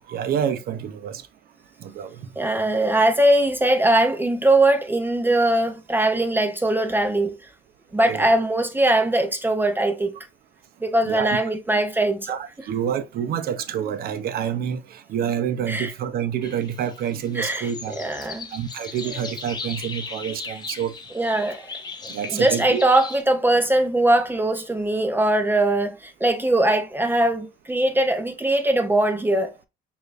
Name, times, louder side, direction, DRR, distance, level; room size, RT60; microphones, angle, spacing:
voice 1, 0.1-1.2 1.8-2.2 8.1-8.3 9.8-9.9 11.0-11.3 12.3-18.0 18.5-20.9 22.1-22.8, right 9 dB, 65° right, 0.6 m, -28 dB
voice 2, 2.4-7.3 7.9-10.1 10.8-12.3 15.7-15.9 17.4-18.5 19.0-19.3 21.1-21.7 22.0-29.5, right 1 dB, 10° right, 0.5 m, -21 dB
sound 1, 16.4-23.2, left 4 dB, 25° left, 0.8 m, -37 dB
4.9 x 2.6 x 2.4 m
cardioid pair, 110°, 17 cm